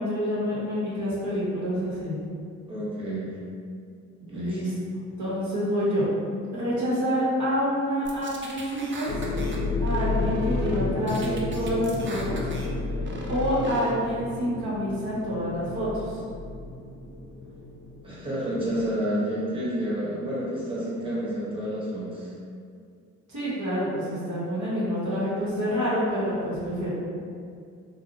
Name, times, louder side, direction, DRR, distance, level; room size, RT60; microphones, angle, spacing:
voice 1, 0.0-2.2 4.3-4.7 5.2-6.1 6.5-9.1 9.8-12.5 13.3-16.2 23.3-26.9, equal, 50° right, -9 dB, 0.9 m, -27 dB
voice 2, 2.7-3.4 4.2-4.6 18.0-22.3, equal, 15° right, -9 dB, 1.2 m, -29 dB
sound 1, 8.1-9.6 9.9-10.8 11.1-12.7 13.0-13.9, right 2 dB, 30° right, 0.5 m, -39 dB
sound 2, 9.1-18.8, left 3 dB, 55° left, 0.5 m, -31 dB
2.5 x 2.0 x 2.7 m, 2.3 s
hypercardioid pair, 45°, 37 cm